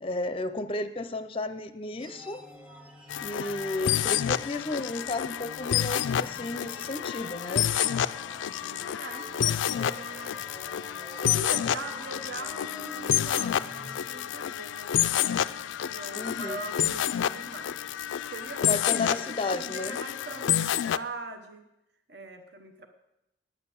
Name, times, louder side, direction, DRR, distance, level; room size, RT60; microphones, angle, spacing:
voice 1, 0.0-2.4 3.2-7.7 16.1-16.6 18.6-20.0, left 2 dB, 30° left, 11 dB, 0.5 m, -33 dB
sound 1, 2.0-14.0, equal, 5° right, 0.9 m, -49 dB
sound 2, 3.1-21.0, left 10 dB, 85° left, 0.4 m, -29 dB
voice 2, 8.4-10.4 11.3-15.2 15.8-17.8 18.3-21.6 22.1-22.9, right 2 dB, 60° right, 7 dB, 1.1 m, -42 dB
9.5 x 8.9 x 7.0 m, 0.87 s
head